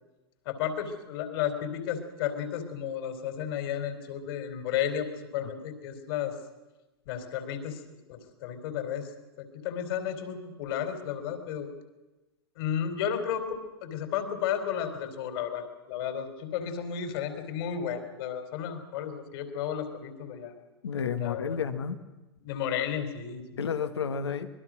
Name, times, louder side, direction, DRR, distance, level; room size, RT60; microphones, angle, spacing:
voice 1, 0.5-6.3 7.1-7.8 8.1-9.1 9.4-11.7 12.6-20.5 21.2-21.6 22.4-23.7, left 9 dB, 60° left, 8 dB, 3.8 m, -33 dB
voice 2, 20.8-22.0 23.6-24.5, left 6 dB, 80° left, 10 dB, 1.7 m, -31 dB
25.5 x 21.5 x 6.3 m, 1.1 s
hypercardioid pair, 95°, 14 cm